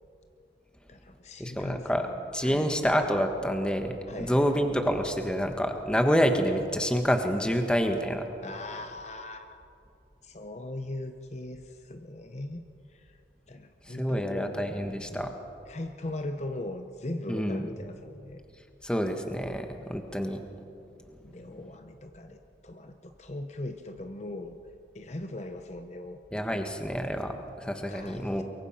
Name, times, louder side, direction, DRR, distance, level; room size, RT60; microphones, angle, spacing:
voice 1, 0.9-2.8 4.1-4.5 8.4-9.6 10.2-13.2 13.5-15.2 15.7-18.4 21.2-24.6 24.9-26.2 27.9-28.4, left 1 dB, 35° left, 7 dB, 0.9 m, -39 dB
voice 2, 1.4-2.1 2.3-8.3 13.9-15.3 17.3-17.7 18.8-20.4 26.3-28.4, equal, 5° left, 5 dB, 1.4 m, -28 dB
23.0 x 23.0 x 5.8 m, 2.6 s
head